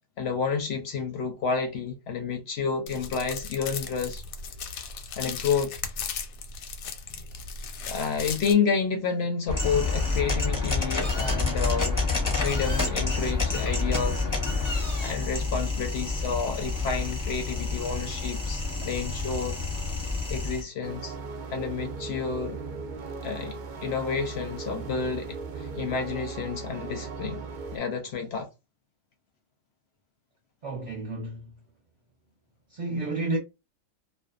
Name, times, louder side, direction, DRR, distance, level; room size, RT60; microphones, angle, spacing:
voice 1, 0.2-4.2 5.2-5.7 7.9-12.0 12.2-14.3 14.6-19.6 20.3-21.2 21.5-22.6 23.2-27.4 27.7-28.5, left 5 dB, 65° left, 0.7 m, -30 dB
sound 1, 2.9-8.5, left 6 dB, 85° left, 1.0 m, -37 dB
sound 2, 9.5-20.6, left 3 dB, 20° left, 0.5 m, -28 dB
sound 3, 20.8-27.8, right 4 dB, 90° right, 0.4 m, -37 dB
voice 2, 30.6-31.5 32.7-33.4, right 2 dB, 40° right, 0.8 m, -31 dB
2.5 x 2.2 x 2.3 m
omnidirectional pair, 1.4 m